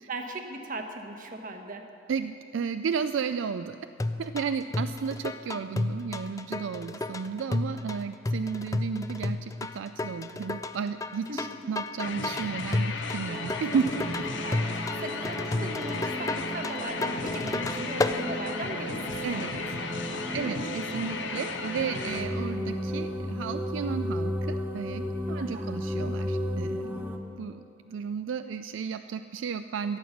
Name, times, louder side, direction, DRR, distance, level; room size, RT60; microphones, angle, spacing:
voice 1, 0.1-1.9 11.3-11.4 14.4-19.6 20.3-20.8 25.3-25.7, right 2 dB, 45° right, 4 dB, 1.1 m, -38 dB
voice 2, 2.1-3.8 4.2-14.2 14.8-15.0 19.2-19.6 20.3-30.0, right 6 dB, 80° right, 10 dB, 0.4 m, -33 dB
sound 1, 4.0-18.2, left 2 dB, 20° left, 0.4 m, -32 dB
sound 2, 12.0-22.2, left 4 dB, 70° left, 0.9 m, -36 dB
sound 3, 13.3-27.2, equal, 10° right, 0.9 m, -34 dB
13.0 x 9.4 x 7.2 m, 2.7 s
head